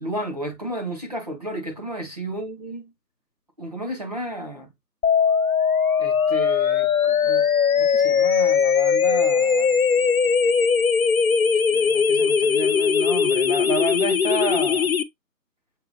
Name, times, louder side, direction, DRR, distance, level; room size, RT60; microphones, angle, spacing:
voice 1, 0.0-2.8 3.6-4.7 6.0-7.5 7.7-9.8 11.7-14.9, equal, 25° right, 0.8 m, -31 dB
sound 1, 5.0-15.0, left 6 dB, 60° left, 0.6 m, -20 dB
6.7 x 2.7 x 2.6 m
figure-of-eight pair, 165°, 50 cm